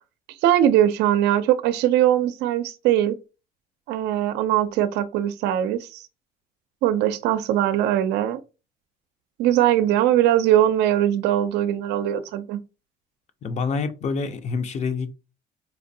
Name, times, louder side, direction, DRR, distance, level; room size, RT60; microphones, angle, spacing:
voice 1, 0.4-3.2 3.9-6.0 6.8-8.4 9.4-12.6, right 12 dB, 85° right, 0.4 m, -21 dB
voice 2, 13.4-15.1, left 5 dB, 45° left, 0.5 m, -27 dB
4.2 x 2.5 x 2.6 m
cardioid pair, 110°, 17 cm